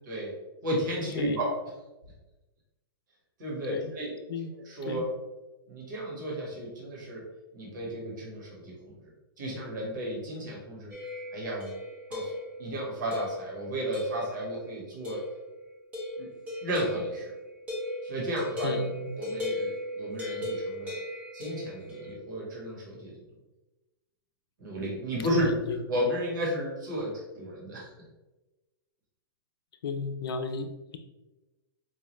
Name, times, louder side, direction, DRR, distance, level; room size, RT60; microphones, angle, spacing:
voice 1, 0.6-1.5 3.4-4.1 4.6-5.0 5.7-7.2 7.5-8.7 9.4-10.9 11.3-11.7 12.1-15.2 16.2-16.3 16.6-17.3 18.0-18.8 19.2-21.0 21.3-23.1 24.6-25.5 25.9-27.9, right 1 dB, 50° right, -4 dB, 1.5 m, -33 dB
sound 1, 10.9-12.7 13.1-13.5 13.9-14.5 15.0-15.4 15.9-22.1, left 1 dB, 10° right, 0.6 m, -36 dB
voice 2, 18.6-19.1 25.3-25.8 29.8-31.0, left 4 dB, 70° left, 7 dB, 0.5 m, -33 dB
4.7 x 2.4 x 3.1 m, 1.1 s
hypercardioid pair, 175°, 13 cm